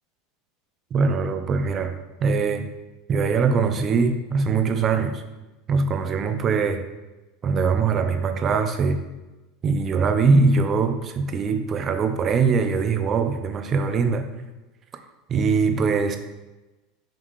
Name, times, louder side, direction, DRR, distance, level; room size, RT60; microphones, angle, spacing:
voice 1, 0.9-1.9 2.2-2.7 3.1-5.2 5.7-6.8 7.4-9.0 9.6-14.3 15.3-16.2, right 4 dB, 35° right, 8 dB, 0.4 m, -22 dB
3.7 x 3.7 x 3.1 m, 1.1 s
supercardioid pair, 120°, 0 cm